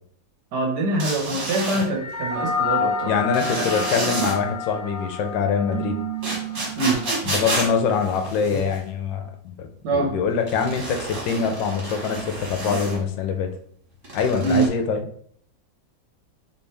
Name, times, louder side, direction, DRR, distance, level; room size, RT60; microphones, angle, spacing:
voice 1, 0.5-3.2 3.4-3.7 6.8-7.3 9.8-10.1 14.4-14.7, right 3 dB, 65° right, 0 dB, 1.6 m, -24 dB
sound 1, 1.0-1.8 3.3-4.3 6.2-8.8 10.5-13.0 14.0-14.7, right 2 dB, 45° right, 1.8 m, -29 dB
sound 2, 2.0-6.6, left 5 dB, 25° left, 1.5 m, -29 dB
voice 2, 3.0-6.0 7.2-13.5 14.1-15.3, left 6 dB, 80° left, 5 dB, 1.3 m, -24 dB
Keyboard (musical), 5.7-7.7, right 16 dB, 85° right, 1.3 m, -33 dB
4.4 x 3.5 x 3.3 m, 0.63 s
omnidirectional pair, 2.0 m